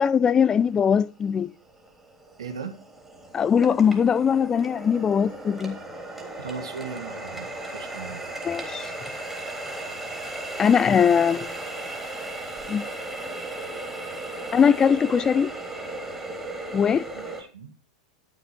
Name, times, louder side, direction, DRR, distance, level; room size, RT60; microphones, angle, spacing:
voice 1, 0.0-1.5 3.3-5.8 8.4-8.9 10.6-11.5 12.7-12.8 14.5-15.5 16.7-17.1, left 7 dB, 20° left, 0.5 m, -21 dB
Water tap faucet, 0.9-1.0 1.6-17.4, right 2 dB, 5° right, 3.5 m, -36 dB
voice 2, 2.4-2.8 6.4-8.2 17.1-17.7, right 5 dB, 70° right, 1.9 m, -38 dB
11.5 x 7.5 x 4.3 m
figure-of-eight pair, 90°, 3 cm